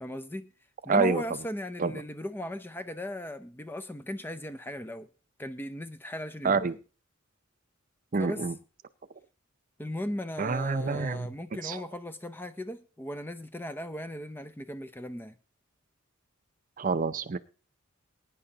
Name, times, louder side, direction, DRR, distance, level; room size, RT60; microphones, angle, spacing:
voice 1, 0.0-0.5 0.8-5.1 5.4-6.6 8.2-8.4 9.8-15.4, left 1 dB, 10° left, 0.5 m, -37 dB
voice 2, 0.9-1.2 1.8-1.9 6.4-6.8 8.1-8.5 10.4-11.3 11.6-11.8 16.8-17.4, right 4 dB, 40° right, 0.5 m, -27 dB
21.0 x 9.8 x 2.8 m
head